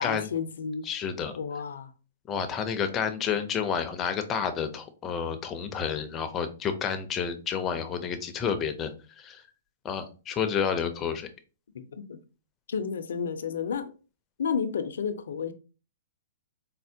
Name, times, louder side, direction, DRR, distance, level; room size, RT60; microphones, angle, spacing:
voice 1, 0.0-0.8 1.4-1.9 11.7-12.2 12.7-13.9 14.4-15.5, left 6 dB, 85° left, 0.4 m, -31 dB
voice 2, 0.8-1.3 2.3-9.4 9.8-11.3, left 7 dB, 20° left, 0.4 m, -30 dB
4.2 x 2.1 x 2.6 m
hypercardioid pair, 155°, 0 cm